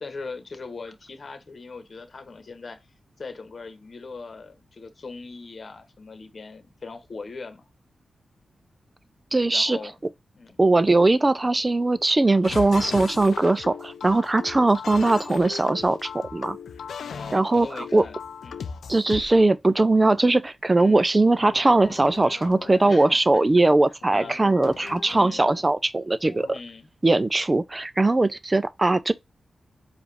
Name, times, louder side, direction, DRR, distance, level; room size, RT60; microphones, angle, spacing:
voice 1, 0.0-2.9 3.2-7.6 9.5-9.9 10.3-10.6 17.0-18.2 18.4-18.6 20.8-21.0 22.9-23.4 24.1-24.4 25.1-25.5 26.5-26.9, left 4 dB, 50° left, 1.1 m, -40 dB
voice 2, 9.3-9.8 10.6-16.6 17.3-18.0 18.9-26.6 27.0-29.1, right 2 dB, 25° right, 0.5 m, -20 dB
sound 1, 12.4-19.4 21.3-22.9 24.0-25.7 26.3-26.6, left 6 dB, 85° left, 0.4 m, -38 dB
4.8 x 2.5 x 3.3 m
cardioid pair, 70°, 0 cm